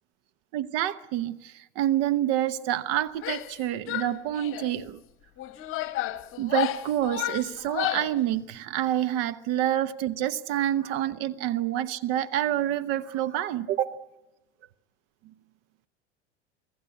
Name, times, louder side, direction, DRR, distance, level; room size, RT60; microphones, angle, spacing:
voice 1, 0.5-5.0 6.4-14.0, right 12 dB, 45° right, 0.9 m, -27 dB
Female speech woman speaking / Yell, 3.1-3.6 3.9-4.7 5.4-8.2, left 15 dB, 35° left, 1.3 m, -32 dB
25.0 x 16.0 x 9.8 m
figure-of-eight pair, 80°, 35 cm